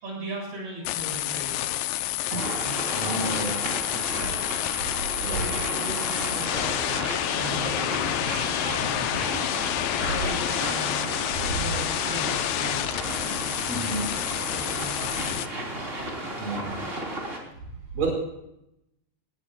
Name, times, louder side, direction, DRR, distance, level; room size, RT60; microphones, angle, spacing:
voice 1, 0.0-1.7 2.6-3.3 5.2-7.0 7.3-8.1 8.6-9.1 10.0-11.1 11.5-13.1 14.4-15.6, right 1 dB, 85° right, -2 dB, 8.9 m, -38 dB
sound 1, 0.8-15.5, left 14 dB, 80° left, 2.3 m, -29 dB
sound 2, 2.4-17.4, right 1 dB, 20° right, 3.3 m, -33 dB
voice 2, 2.9-3.6 4.1-4.3 5.2-5.5 13.7-14.1 16.4-16.8 17.9-18.1, right 3 dB, 45° right, -1 dB, 5.8 m, -30 dB
20.0 x 19.0 x 2.3 m, 0.81 s
omnidirectional pair, 4.4 m